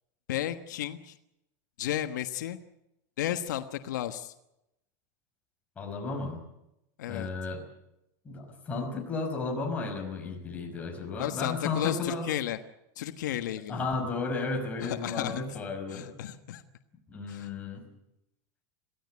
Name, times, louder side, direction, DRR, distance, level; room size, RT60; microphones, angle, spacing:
voice 1, 0.3-1.2 1.8-2.6 3.2-4.3 7.0-7.3 11.2-12.6 13.0-13.8 14.8-15.4 15.9-16.6 17.3-17.5, left 12 dB, 85° left, 9 dB, 1.3 m, -33 dB
voice 2, 5.8-6.4 7.1-7.6 8.3-12.3 13.7-16.1 17.1-17.8, left 4 dB, 15° left, 2 dB, 5.4 m, -33 dB
23.5 x 16.0 x 9.6 m, 0.87 s
supercardioid pair, 160°, 10 cm